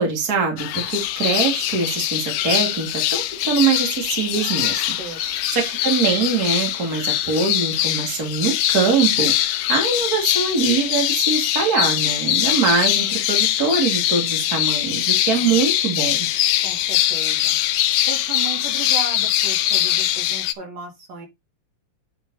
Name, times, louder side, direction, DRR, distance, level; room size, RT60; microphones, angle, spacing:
voice 1, 0.0-4.8 5.2-16.3, right 5 dB, 30° right, 2 dB, 2.9 m, -23 dB
sound 1, 0.6-20.5, left 13 dB, 80° left, 2.1 m, -22 dB
voice 2, 16.6-17.6 18.1-21.3, right 5 dB, 75° right, 0 dB, 5.0 m, -35 dB
9.8 x 5.5 x 4.1 m, 0.21 s
omnidirectional pair, 3.7 m